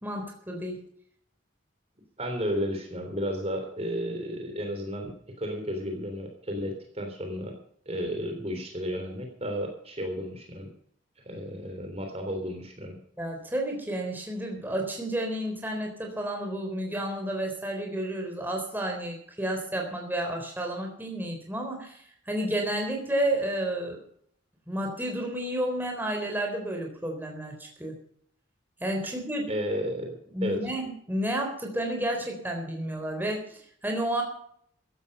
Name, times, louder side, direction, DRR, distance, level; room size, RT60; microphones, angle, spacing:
voice 1, 0.0-0.8 13.2-24.0 24.7-28.0 28.8-29.5 30.3-34.2, right 1 dB, 10° right, 2 dB, 3.8 m, -31 dB
voice 2, 2.2-5.1 5.4-7.5 7.9-10.7 11.3-13.0 29.5-30.1 30.4-30.6, equal, 30° right, 4 dB, 3.4 m, -32 dB
15.5 x 12.0 x 5.4 m, 0.63 s
head